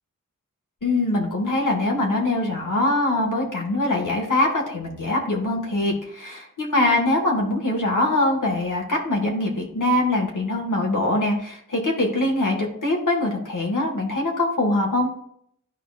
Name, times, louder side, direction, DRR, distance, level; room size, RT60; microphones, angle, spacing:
voice 1, 0.8-15.1, left 2 dB, 75° left, -1 dB, 1.6 m, -23 dB
12.0 x 5.0 x 2.4 m, 0.68 s
wide cardioid pair, 55°, 31 cm